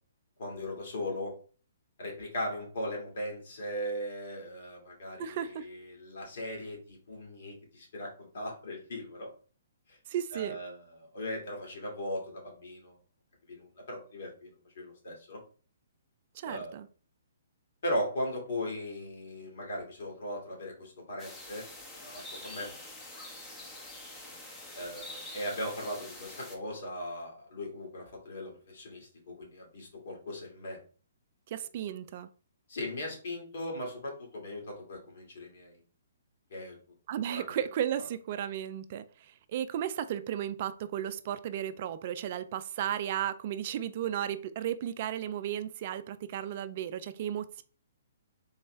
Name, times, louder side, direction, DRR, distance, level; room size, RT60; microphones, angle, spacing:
voice 1, 0.4-1.3 2.0-9.3 9.9-10.0 10.3-13.0 13.5-15.4 16.4-16.8 17.8-21.6 22.0-22.7 24.7-30.8 32.7-35.8 36.5-36.8 37.3-37.4 38.0-38.1, left 1 dB, 55° left, 1.9 m, -38 dB
voice 2, 5.2-5.7 10.1-10.6 16.3-16.9 31.5-32.3 37.1-47.6, right 10 dB, 45° right, 0.3 m, -34 dB
sound 1, 21.2-26.6, left 2 dB, 15° left, 1.0 m, -46 dB
3.9 x 3.2 x 3.1 m
figure-of-eight pair, 125°, 0 cm